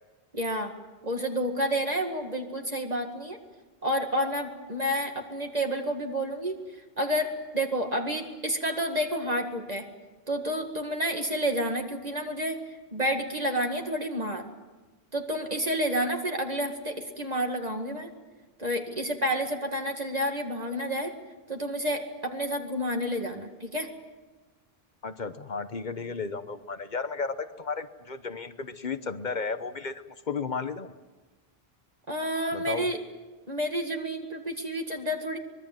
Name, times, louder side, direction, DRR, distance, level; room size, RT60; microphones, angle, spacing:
voice 1, 0.3-0.7 1.0-3.4 3.8-6.6 7.0-9.9 10.3-12.6 12.9-14.5 15.1-18.1 18.6-21.1 21.5-23.9 32.1-33.0 33.5-35.4, equal, 40° right, 3 dB, 2.2 m, -30 dB
voice 2, 25.0-30.9 32.5-32.9, left 4 dB, 50° left, 11 dB, 1.1 m, -34 dB
24.5 x 22.0 x 7.8 m, 1.2 s
omnidirectional pair, 1.0 m